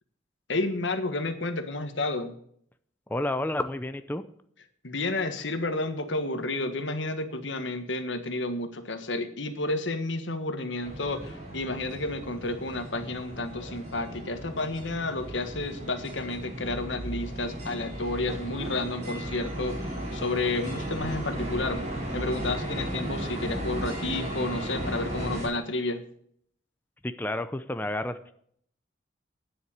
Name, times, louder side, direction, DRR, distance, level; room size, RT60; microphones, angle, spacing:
voice 1, 0.5-2.4 4.8-21.8 22.1-26.0, left 2 dB, 85° left, 8 dB, 1.5 m, -31 dB
voice 2, 3.1-4.2 27.0-28.3, left 1 dB, 10° left, 10 dB, 0.6 m, -30 dB
sound 1, 10.8-25.4, right 1 dB, 40° right, 4.8 m, -35 dB
9.7 x 7.9 x 8.6 m, 0.64 s
head